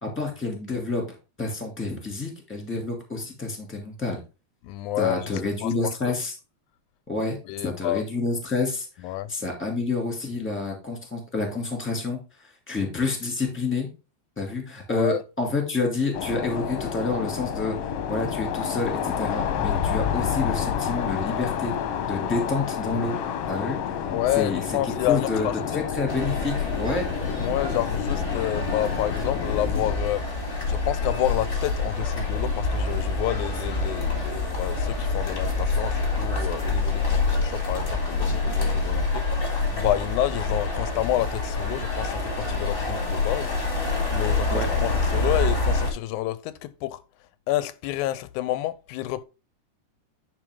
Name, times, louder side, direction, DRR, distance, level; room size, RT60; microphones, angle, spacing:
voice 1, 0.0-4.2 5.0-6.3 7.1-7.4 7.6-8.9 9.3-13.9 14.4-21.7 22.1-23.2 23.5-23.8 24.4-24.6 25.1-27.1 44.5-44.7, left 3 dB, 5° left, 2.0 m, -28 dB
voice 2, 4.6-5.3 5.6-6.2 7.5-8.0 9.0-9.3 14.9-15.2 24.1-25.9 27.4-47.0 47.5-49.2, left 14 dB, 90° left, 2.0 m, -29 dB
sound 1, 16.1-30.0, left 8 dB, 65° left, 1.6 m, -29 dB
sound 2, 26.1-45.9, left 3 dB, 25° left, 1.5 m, -26 dB
9.8 x 5.0 x 3.6 m
omnidirectional pair, 3.4 m